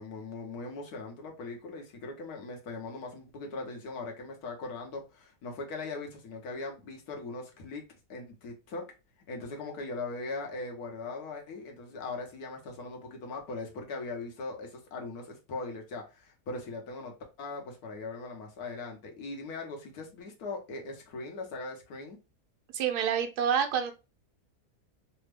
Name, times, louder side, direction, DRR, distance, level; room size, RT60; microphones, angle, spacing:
voice 1, 0.0-7.8 8.1-8.8 9.3-22.2, left 3 dB, 70° left, 1.4 m, -40 dB
voice 2, 22.7-23.9, right 8 dB, 75° right, 1.2 m, -27 dB
3.4 x 2.1 x 3.2 m
omnidirectional pair, 1.7 m